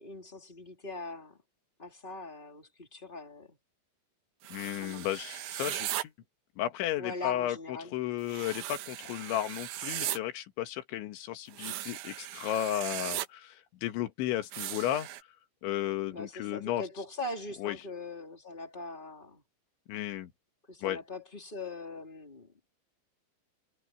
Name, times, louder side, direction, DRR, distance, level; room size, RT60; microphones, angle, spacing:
voice 1, 0.0-1.4 1.8-3.6 4.8-5.1 7.0-7.9 16.1-19.4 20.7-22.5, left 2 dB, 15° left, 2.6 m, -41 dB
sound 1, 4.4-6.0 8.3-10.2 11.5-13.3 14.5-15.2, right 14 dB, 85° right, 3.5 m, -38 dB
voice 2, 4.5-6.1 6.6-7.6 7.9-15.1 15.6-16.8 17.6-17.8 19.9-20.3 20.8-21.0, left 13 dB, 90° left, 3.9 m, -34 dB
omnidirectional pair, 5.2 m